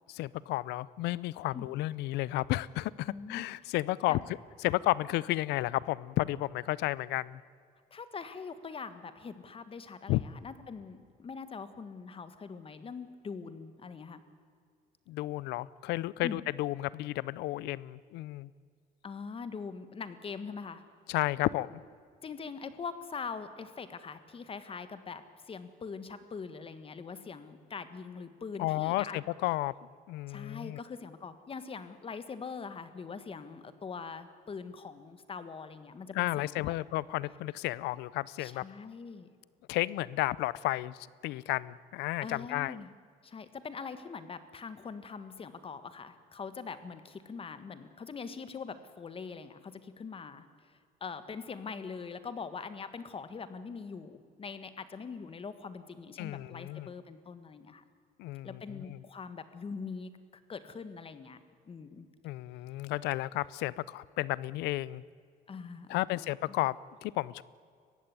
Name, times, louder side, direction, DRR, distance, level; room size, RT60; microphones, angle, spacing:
voice 1, 0.1-4.2 4.6-7.4 10.1-10.2 15.1-18.5 21.1-21.8 28.6-29.7 30.1-30.8 36.1-38.6 39.7-42.8 56.2-56.9 58.2-59.0 62.2-65.0 65.9-67.4, left 17 dB, 90° left, 21 dB, 0.6 m, -32 dB
voice 2, 3.1-3.4 4.1-4.2 7.9-14.2 16.2-16.4 19.0-20.8 22.2-29.2 30.3-36.7 38.4-39.3 42.2-42.9 43.2-50.5 51.0-57.8 58.4-60.1 60.5-61.4 61.6-62.1 65.5-66.5, left 5 dB, 35° left, 11 dB, 1.6 m, -43 dB
21.5 x 15.5 x 9.5 m, 2.2 s
cardioid pair, 110°, 17 cm